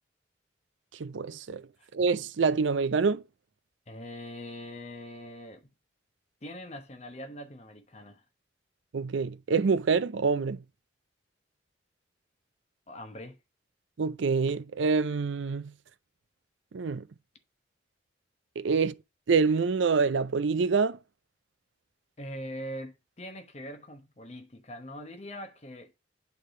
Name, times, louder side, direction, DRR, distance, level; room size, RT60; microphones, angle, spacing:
voice 1, 1.0-1.6 1.9-3.2 8.9-10.6 14.0-15.7 16.7-17.1 18.6-18.9 19.3-21.0, right 5 dB, 80° right, 0.5 m, -26 dB
voice 2, 3.9-5.7 6.4-8.2 12.9-13.4 22.2-25.9, equal, 35° left, 0.9 m, -42 dB
8.6 x 3.4 x 4.3 m
head